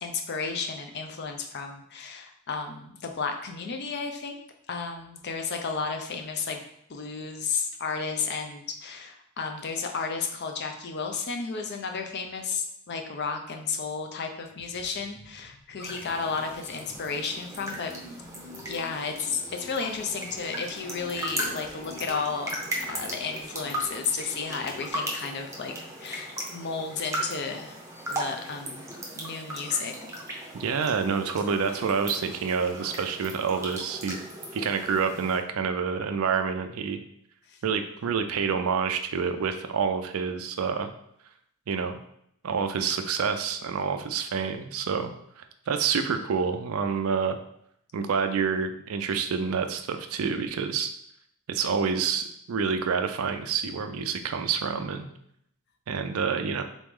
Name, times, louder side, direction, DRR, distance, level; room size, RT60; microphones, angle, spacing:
voice 1, 0.0-4.4 4.7-6.6 6.9-17.9 18.6-27.8 28.1-28.9 29.2-29.9 37.5-37.6, left 5 dB, 50° left, 5 dB, 0.5 m, -33 dB
sound 1, 14.5-24.9, left 1 dB, 10° left, 1.2 m, -49 dB
sound 2, 15.8-35.4, right 1 dB, 15° right, 0.6 m, -37 dB
voice 2, 30.5-34.2 34.5-37.0 37.6-40.9 41.7-41.9 42.4-47.4 47.9-50.9 51.5-55.1 55.9-56.6, right 6 dB, 70° right, 7 dB, 0.4 m, -28 dB
3.9 x 3.1 x 3.6 m, 0.72 s
head